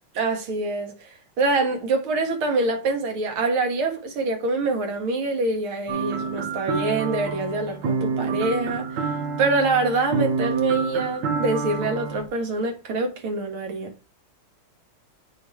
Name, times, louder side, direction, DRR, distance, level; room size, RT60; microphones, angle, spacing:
voice 1, 0.1-8.9 9.4-13.9, right 3 dB, 85° right, 2.4 m, -25 dB
sound 1, 5.9-12.3, right 5 dB, 65° right, 1.5 m, -28 dB
8.2 x 4.0 x 4.4 m
omnidirectional pair, 2.3 m